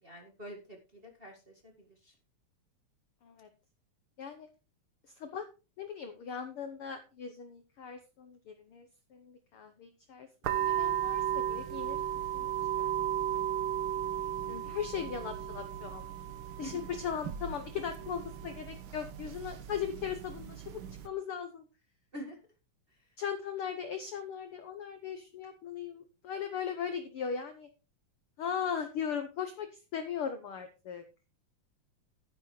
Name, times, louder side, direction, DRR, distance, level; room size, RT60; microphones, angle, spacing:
voice 1, 0.0-2.1 14.5-14.8 16.6-16.8 22.1-22.4, left 1 dB, 25° right, 1 dB, 1.3 m, -46 dB
voice 2, 5.8-10.3 10.5-12.0 12.3-12.5 12.8-12.9 13.3-13.4 14.6-16.1 16.6-21.7 23.2-27.7 28.4-31.0, left 7 dB, 65° left, 8 dB, 1.4 m, -38 dB
sound 1, 10.4-21.1, right 11 dB, 90° right, 1.1 m, -35 dB
11.5 x 10.0 x 3.2 m, 0.32 s
omnidirectional pair, 3.6 m